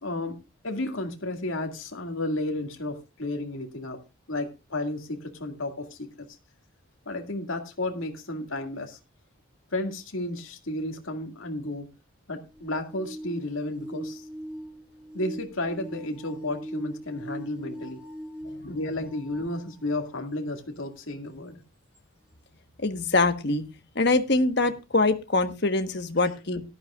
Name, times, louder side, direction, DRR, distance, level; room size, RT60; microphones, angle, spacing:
voice 1, 0.0-4.0 4.3-6.3 7.1-9.0 9.7-11.9 12.3-14.2 15.1-18.0 18.6-21.6, left 1 dB, 75° left, 3 dB, 2.2 m, -32 dB
sound 1, 12.5-20.1 20.8-20.9 21.9-22.0, equal, 5° right, 2.3 m, -41 dB
voice 2, 22.8-23.6 23.9-26.6, left 3 dB, 50° left, 7 dB, 1.3 m, -24 dB
17.5 x 12.0 x 2.4 m, 0.27 s
head